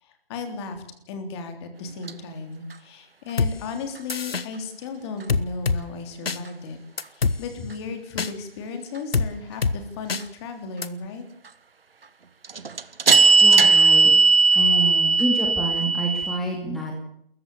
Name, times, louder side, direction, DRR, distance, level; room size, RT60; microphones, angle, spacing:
voice 1, 0.0-11.2, left 4 dB, 30° left, 7 dB, 3.4 m, -35 dB
sound 1, 2.1-2.2 12.4-16.4, right 4 dB, 75° right, 1.6 m, -17 dB
sound 2, 3.4-3.5 4.1-4.5 5.3-5.8 6.3-6.4 7.0-7.4 8.2-8.3 9.1-9.3 9.6-9.8 10.1-10.2 10.8-10.9, left 4 dB, 80° left, 1.5 m, -23 dB
voice 2, 13.4-14.1 14.5-17.0, right 1 dB, ahead, -1 dB, 2.4 m, -28 dB
28.0 x 14.5 x 7.1 m, 0.70 s
figure-of-eight pair, 145°, 29 cm